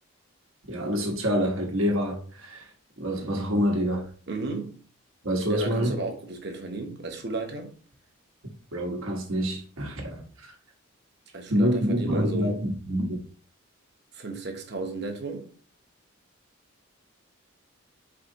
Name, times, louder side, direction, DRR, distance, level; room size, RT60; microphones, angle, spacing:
voice 1, 0.7-2.7 3.0-4.1 5.2-6.0 8.4-10.5 11.5-13.2, equal, 75° right, 1.2 m, -27 dB
voice 2, 4.3-4.8 5.5-7.7 11.3-12.6 14.1-15.5, right 2 dB, 50° right, 0.9 m, -34 dB
4.8 x 2.7 x 3.9 m
head